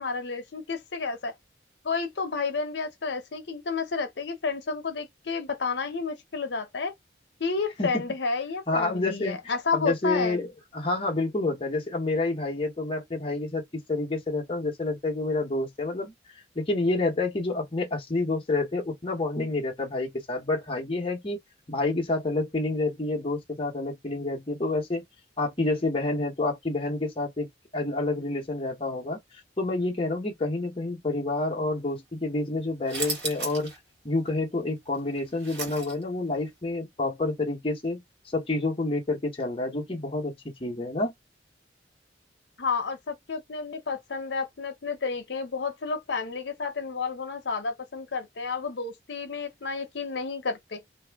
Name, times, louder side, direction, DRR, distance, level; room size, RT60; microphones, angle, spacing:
voice 1, 0.0-1.3 1.8-6.9 7.4-10.4 42.6-50.8, left 4 dB, 70° left, 0.7 m, -31 dB
voice 2, 8.7-13.6 13.9-16.1 16.6-21.4 21.7-25.0 25.4-27.5 27.7-29.2 29.6-33.7 34.0-38.0 38.3-41.1, left 2 dB, 30° left, 0.8 m, -28 dB
sound 1, 32.9-33.8 34.2-34.3 34.9-36.3, right 3 dB, 70° right, 1.4 m, -34 dB
2.7 x 2.5 x 3.4 m
head